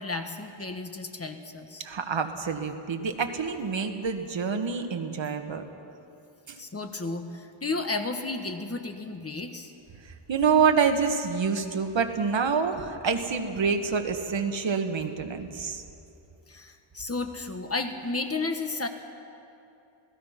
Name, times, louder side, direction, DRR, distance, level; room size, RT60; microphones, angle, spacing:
voice 1, 0.0-1.8 6.6-9.7 16.5-18.9, left 3 dB, 30° left, 6 dB, 1.4 m, -33 dB
voice 2, 1.8-5.6 6.5-6.6 10.3-15.8, right 5 dB, 65° right, 6 dB, 1.6 m, -27 dB
27.5 x 18.0 x 5.9 m, 2.8 s
wide cardioid pair, 135°, 48 cm